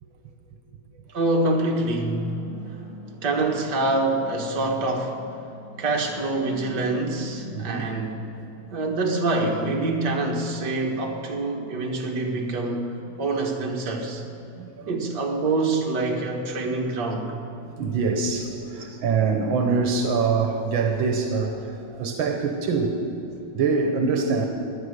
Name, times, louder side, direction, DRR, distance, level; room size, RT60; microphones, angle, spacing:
voice 1, 1.1-2.3 3.2-5.2 5.8-8.3 8.7-14.2 14.9-17.3 18.9-19.0, right 2 dB, 60° right, 1 dB, 2.1 m, -25 dB
sound 1, 2.0-7.9, left 2 dB, 85° left, 3.7 m, -45 dB
voice 2, 7.5-8.8 11.7-11.8 14.6-15.0 16.6-16.7 17.6-23.0 23.2-24.5, right 4 dB, 85° right, 4 dB, 1.8 m, -25 dB
17.0 x 11.5 x 6.6 m, 2.9 s
omnidirectional pair, 2.1 m